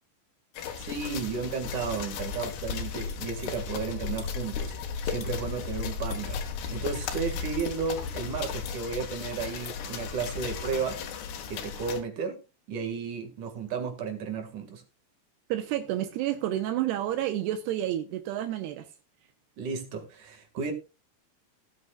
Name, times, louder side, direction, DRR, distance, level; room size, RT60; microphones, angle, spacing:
sound 1, 0.5-12.0, left 6 dB, 75° left, 3.5 m, -35 dB
voice 1, 0.8-4.7 5.1-6.4 6.7-11.0 11.5-12.4 12.7-14.8 19.6-20.7, right 5 dB, 55° right, 3.0 m, -33 dB
voice 2, 15.5-18.9, right 12 dB, 80° right, 2.9 m, -30 dB
17.5 x 9.7 x 2.3 m
omnidirectional pair, 4.8 m